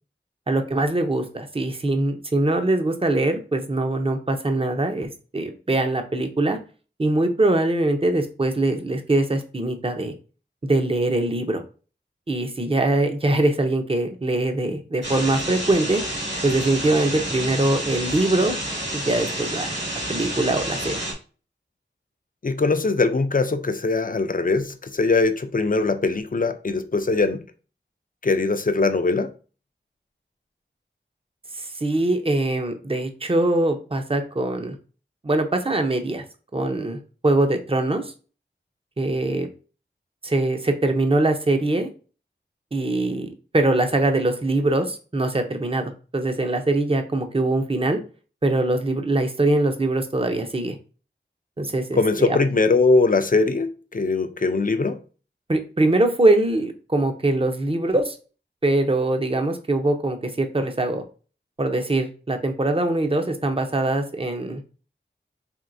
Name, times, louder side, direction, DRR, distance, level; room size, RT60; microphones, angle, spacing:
voice 1, 0.5-6.6 7.0-10.1 10.6-11.6 12.3-16.0 16.4-18.5 18.9-19.7 20.1-21.0 31.5-34.8 35.2-36.2 36.5-38.1 39.0-39.5 40.2-41.9 42.7-48.0 48.4-50.8 51.6-52.4 55.5-58.2 58.6-61.0 61.6-64.6, right 2 dB, 30° right, 0.6 m, -22 dB
sound 1, 15.0-21.1, right 1 dB, 65° right, 1.9 m, -29 dB
voice 2, 22.4-27.4 28.2-29.3 52.0-55.0, left 3 dB, 45° left, 0.5 m, -21 dB
4.4 x 3.1 x 2.6 m
wide cardioid pair, 50°, 20 cm